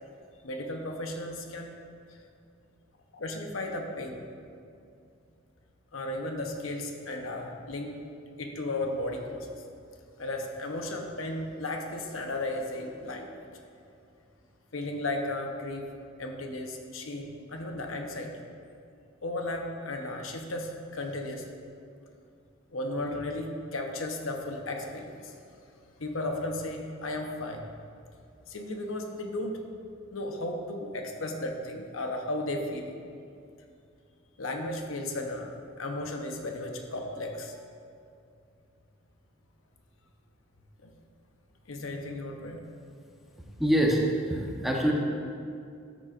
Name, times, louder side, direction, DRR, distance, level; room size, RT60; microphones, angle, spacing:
voice 1, 0.4-1.7 3.1-4.2 5.9-7.9 8.4-9.5 10.2-13.5 14.7-15.9 16.2-18.4 19.2-21.4 22.7-25.3 26.0-27.6 28.5-29.6 30.1-33.0 34.4-37.6 40.8-40.9 41.7-42.6, left 1 dB, 85° left, 3 dB, 0.9 m, -35 dB
voice 2, 43.6-44.9, right 1 dB, ahead, -2 dB, 0.9 m, -25 dB
13.5 x 6.9 x 2.5 m, 2.4 s
head